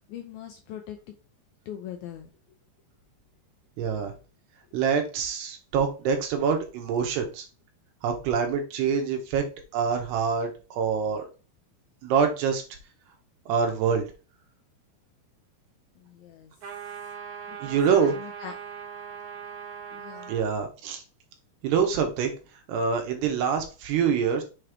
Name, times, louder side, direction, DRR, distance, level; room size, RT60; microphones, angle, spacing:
voice 1, 0.1-1.0 1.7-2.3 16.0-16.5 17.5-18.5 19.9-20.3, left 10 dB, 80° left, 4 dB, 2.2 m, -41 dB
voice 2, 3.8-4.1 4.7-7.5 8.0-9.4 9.7-11.2 12.0-12.6 13.5-14.1 17.6-18.1 20.3-21.0 21.6-22.3 22.7-24.4, right 6 dB, 75° right, 4 dB, 3.1 m, -25 dB
sound 1, 16.6-20.5, right 7 dB, 55° right, 2.5 m, -40 dB
7.2 x 3.2 x 5.0 m, 0.32 s
omnidirectional pair, 5.0 m